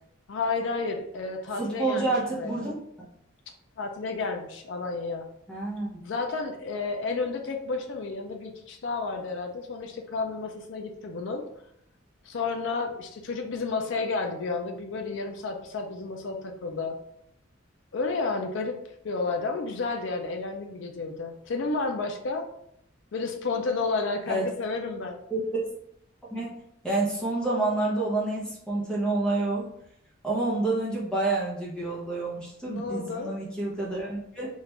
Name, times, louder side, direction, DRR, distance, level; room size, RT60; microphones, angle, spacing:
voice 1, 0.3-2.6 3.8-5.3 6.0-11.4 12.2-17.0 17.9-18.8 19.0-22.4 23.1-25.2 32.7-33.3, left 3 dB, 65° left, 4 dB, 0.4 m, -31 dB
voice 2, 1.6-2.7 5.5-6.0 24.3-24.5 25.3-25.6 26.3-26.5 26.8-29.7 30.2-34.5, right 2 dB, 5° left, -5 dB, 0.7 m, -28 dB
3.1 x 2.5 x 3.2 m, 0.74 s
head